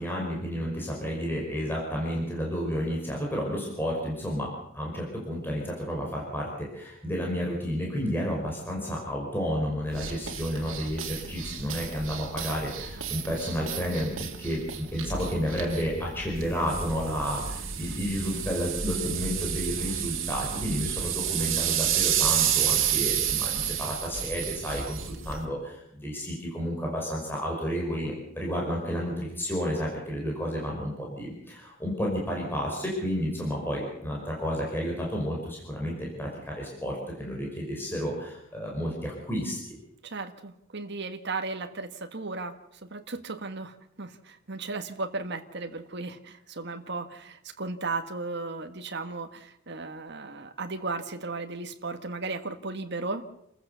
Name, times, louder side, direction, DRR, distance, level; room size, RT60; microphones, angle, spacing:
voice 1, 0.0-25.0 25.2-39.8, equal, 10° left, -2 dB, 5.3 m, -31 dB
sound 1, 9.9-25.4, right 9 dB, 90° right, 2.4 m, -31 dB
voice 2, 40.0-42.5 42.8-53.2, right 3 dB, 60° right, 6 dB, 1.6 m, -35 dB
28.5 x 15.0 x 6.8 m, 0.75 s
head